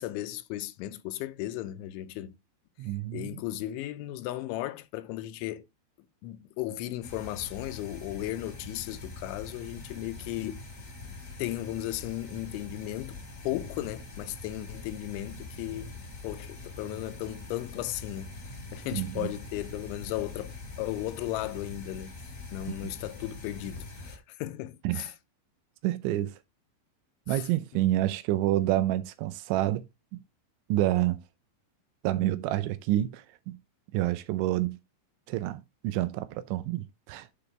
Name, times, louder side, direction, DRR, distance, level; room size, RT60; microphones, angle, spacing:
voice 1, 0.0-2.3 3.1-5.7 6.2-10.6 11.4-13.2 13.4-22.2 22.5-25.1 27.3-27.5, left 14 dB, 90° left, 3.1 m, -36 dB
voice 2, 2.8-3.4 18.9-19.3 24.8-25.1 25.8-26.4 27.3-29.8 30.7-31.2 32.0-33.6 33.9-34.8 35.3-37.3, right 14 dB, 85° right, 3.2 m, -28 dB
sound 1, 7.0-24.2, left 3 dB, 30° left, 1.5 m, -44 dB
9.9 x 7.0 x 3.3 m
omnidirectional pair, 5.4 m